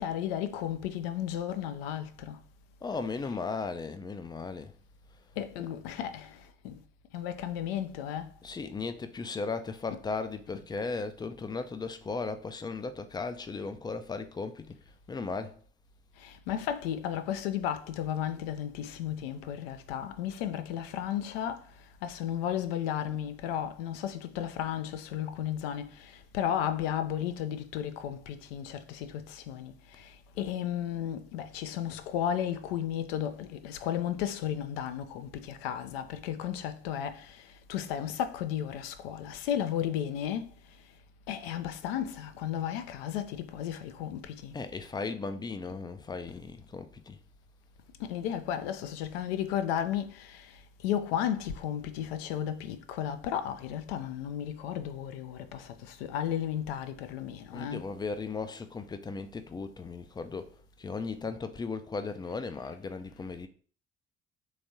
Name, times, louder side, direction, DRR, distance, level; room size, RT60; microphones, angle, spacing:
voice 1, 0.0-2.4 5.4-6.3 6.6-6.7 7.1-8.3 16.2-21.6 22.0-25.9 26.3-30.1 30.4-37.4 37.7-40.5 41.3-44.5 48.0-50.5 50.8-57.8, left 10 dB, 70° left, 0.5 m, -34 dB
voice 2, 2.8-4.7 5.6-5.7 8.4-14.8 15.1-15.6 44.5-47.2 57.5-60.5 60.8-63.5, left 4 dB, 15° left, 0.3 m, -36 dB
3.4 x 3.2 x 2.6 m
figure-of-eight pair, 50°, 31 cm